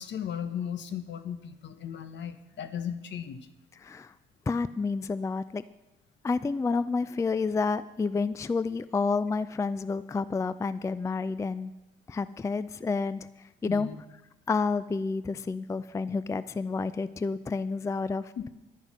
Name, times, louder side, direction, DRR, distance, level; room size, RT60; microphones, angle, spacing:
voice 1, 0.0-3.4 13.7-14.0 18.4-18.5, left 8 dB, 65° left, 10 dB, 1.1 m, -36 dB
voice 2, 3.8-4.1 4.5-5.6 6.2-11.7 12.1-13.3 13.6-13.9 14.5-18.5, left 4 dB, 15° left, 15 dB, 0.3 m, -29 dB
11.0 x 9.5 x 6.1 m, 0.95 s
cardioid pair, 90°, 20 cm